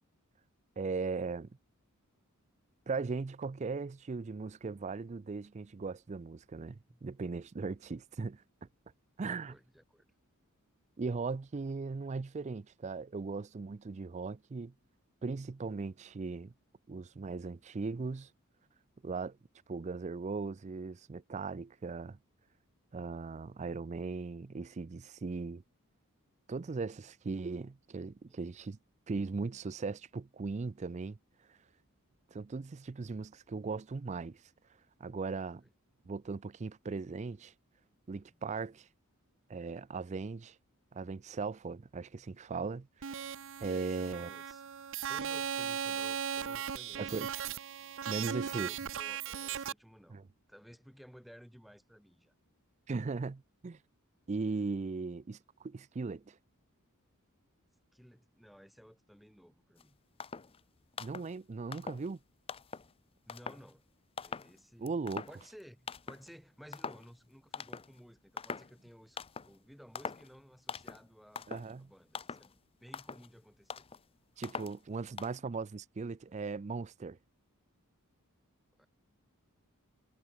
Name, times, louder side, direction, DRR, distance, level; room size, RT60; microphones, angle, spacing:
voice 1, 0.8-1.5 2.9-8.4 9.2-9.5 11.0-14.7 15.2-16.5 16.9-18.3 19.0-19.4 19.7-22.2 22.9-25.6 26.5-28.8 29.1-31.2 31.5-31.6 32.3-34.4 35.0-35.6 36.0-37.5 38.1-38.9 39.5-40.6 40.9-43.3 43.6-44.3 47.0-47.3 48.1-48.7 50.1-50.2 52.9-53.8 54.3-56.4 61.0-62.2 64.8-65.3 71.5-71.9 74.4-77.2, right 4 dB, 30° right, 0.4 m, -38 dB
voice 2, 9.3-10.1 28.3-28.4 38.3-38.4 43.7-44.6 45.1-47.3 48.1-50.2 50.5-52.3 57.9-60.0 63.3-63.9 64.2-64.9 65.3-69.2 69.5-71.5 71.8-73.9 78.8-78.9, equal, ahead, 6.2 m, -56 dB
sound 1, 43.0-49.7, right 8 dB, 60° right, 0.7 m, -37 dB
sound 2, 59.8-59.9 60.2-60.6 60.9-61.4 61.7-62.1 62.5-62.9 63.3-63.7 64.2-64.6 64.9-65.6 65.9-66.3 66.7-67.1 67.5-68.0 68.4-68.8 69.2-69.6 70.0-70.3 70.7-71.1 71.4-71.7 72.1-72.5 72.9-73.3 73.7-74.0 74.4-74.8 75.2-75.4, left 5 dB, 25° left, 0.5 m, -43 dB
head